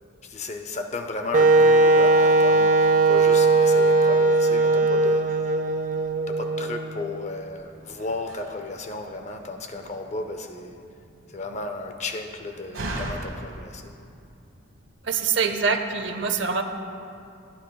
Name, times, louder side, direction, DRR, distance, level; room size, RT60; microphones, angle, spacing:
voice 1, 0.2-5.5 6.3-10.8 11.3-14.0, left 2 dB, 35° left, 5 dB, 0.6 m, -34 dB
Wind instrument woodwind instrument, 1.3-7.2, right 3 dB, 40° right, 0.3 m, -19 dB
Slam, 7.3-14.9, right 1 dB, 80° right, 1.3 m, -40 dB
voice 2, 15.1-16.6, right 5 dB, 65° right, 6 dB, 0.7 m, -24 dB
17.0 x 10.0 x 2.3 m, 2.5 s
head